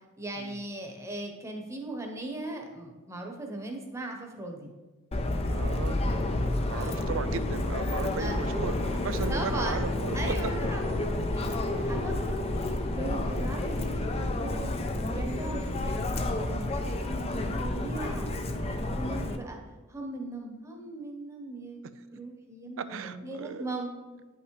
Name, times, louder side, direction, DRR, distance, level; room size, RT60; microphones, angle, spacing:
voice 1, 0.0-4.7 6.7-7.1 8.2-8.4 9.3-9.8 10.1-11.0 11.3-14.1 14.4-18.3 18.8-19.6 19.9-21.9 22.1-23.9, right 1 dB, 15° right, 1 dB, 1.1 m, -38 dB
Subway metro underground, 5.1-19.4, left 1 dB, 30° left, 0.6 m, -30 dB
voice 2, 5.5-6.0 6.7-10.5 11.0-11.1 11.4-12.1 18.4-18.9 22.8-23.7, right 5 dB, 80° right, 12 dB, 0.4 m, -37 dB
9.6 x 5.7 x 3.2 m, 1.3 s
head